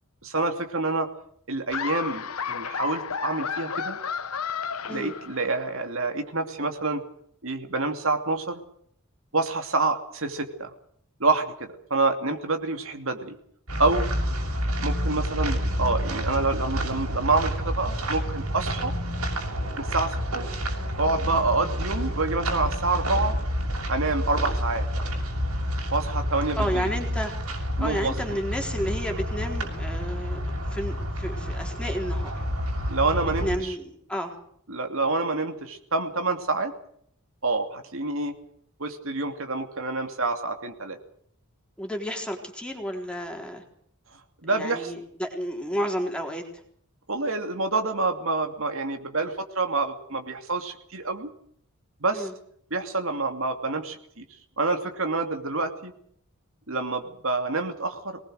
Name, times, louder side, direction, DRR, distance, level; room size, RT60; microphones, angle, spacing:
voice 1, 0.2-1.1 1.5-4.0 4.9-7.0 7.4-8.6 9.3-10.7 11.2-13.4 13.8-14.1 14.8-18.9 19.8-20.5 21.0-23.4 23.9-24.9 25.9-26.9 27.8-28.4 32.9-33.7 34.7-36.7 37.4-38.4 38.8-41.0 44.4-44.9 47.1-51.3 52.0-52.3 52.7-54.2 54.6-55.9 56.7-58.2, right 3 dB, 65° right, 6 dB, 2.7 m, -27 dB
Laughter, 1.7-5.7, left 6 dB, 80° left, 1.1 m, -32 dB
sound 1, 13.7-33.6, equal, 85° right, 6.6 m, -29 dB
voice 2, 26.6-30.4 30.7-32.4 33.4-34.3 41.8-43.6 44.5-46.4 52.1-52.3, equal, 5° left, 3 dB, 3.8 m, -31 dB
23.5 x 20.0 x 6.5 m, 0.65 s
head